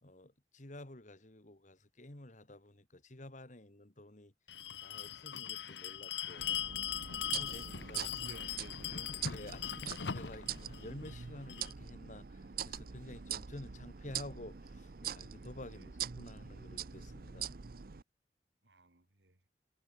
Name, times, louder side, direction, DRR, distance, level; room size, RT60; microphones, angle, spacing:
voice 1, 0.0-4.3 4.8-6.5 7.1-8.1 9.3-17.6, left 1 dB, 45° left, 2.1 m, -50 dB
Bell, 4.5-11.7, left 9 dB, 75° left, 0.9 m, -40 dB
sound 1, 6.4-18.0, right 8 dB, 55° right, 0.7 m, -44 dB
voice 2, 7.9-9.1 15.7-15.9 18.6-19.4, right 2 dB, 85° right, 3.8 m, -55 dB
head